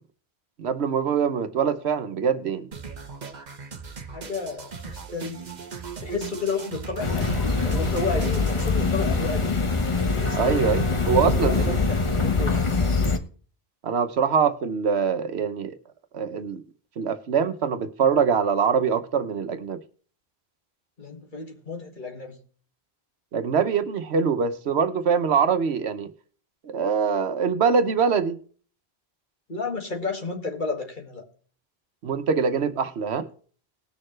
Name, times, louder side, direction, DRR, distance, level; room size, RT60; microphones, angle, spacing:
voice 1, 0.6-2.7 10.3-11.8 13.8-15.8 16.1-16.6 17.0-19.8 23.3-26.1 26.6-28.4 32.0-33.3, right 6 dB, 90° right, 1.2 m, -23 dB
sound 1, 2.7-8.7, right 5 dB, 45° right, 1.0 m, -38 dB
voice 2, 4.1-5.5 6.0-9.7 10.1-12.6 21.0-22.4 29.5-31.2, left 4 dB, 50° left, 2.1 m, -32 dB
sound 2, 7.0-13.2, left 4 dB, 30° left, 1.0 m, -23 dB
19.5 x 6.6 x 3.2 m
omnidirectional pair, 1.1 m